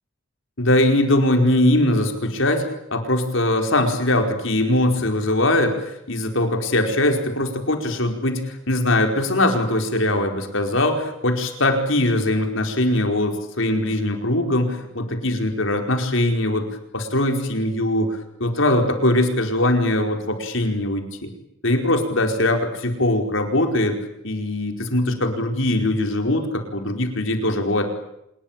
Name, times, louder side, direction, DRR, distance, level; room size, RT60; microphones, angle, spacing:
voice 1, 0.6-2.6 2.9-16.7 16.9-21.3 21.6-24.0 24.2-27.9, left 1 dB, 70° left, 4 dB, 4.7 m, -21 dB
26.5 x 21.5 x 8.9 m, 0.81 s
head